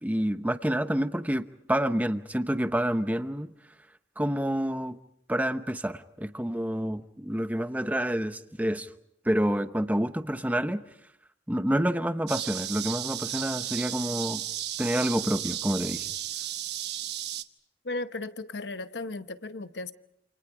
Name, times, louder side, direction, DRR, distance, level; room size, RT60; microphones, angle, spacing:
voice 1, 0.0-3.5 4.2-5.0 5.3-8.9 9.2-10.8 11.5-14.4 14.8-16.1, equal, 10° right, 0.9 m, -28 dB
sound 1, 12.3-17.4, right 12 dB, 70° right, 1.1 m, -34 dB
voice 2, 17.8-19.9, left 2 dB, 80° left, 1.0 m, -35 dB
28.5 x 28.0 x 5.0 m
head